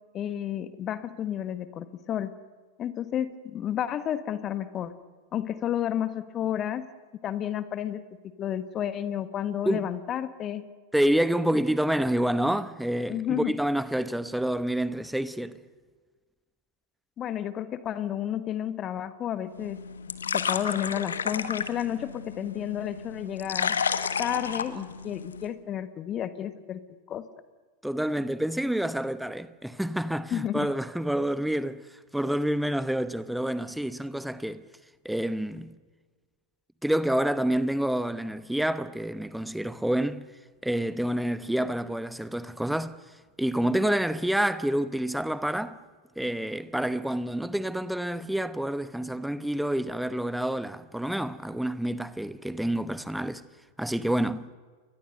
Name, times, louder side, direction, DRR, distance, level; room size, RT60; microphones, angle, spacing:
voice 1, 0.1-2.3 2.8-5.0 5.3-6.8 7.2-8.0 8.4-10.6 13.1-13.5 17.2-19.8 20.3-23.7 24.2-26.8 27.1-27.2 30.3-30.7, left 10 dB, 30° left, 1.4 m, -31 dB
voice 2, 10.9-15.6 27.8-31.8 32.1-34.6 35.0-35.7 36.8-40.3 40.6-43.0 43.4-45.8 46.2-53.4 53.8-54.5, right 1 dB, ahead, 1.0 m, -28 dB
sound 1, 19.5-25.5, left 6 dB, 70° left, 1.4 m, -32 dB
29.5 x 22.5 x 6.8 m
figure-of-eight pair, 90°, 0 cm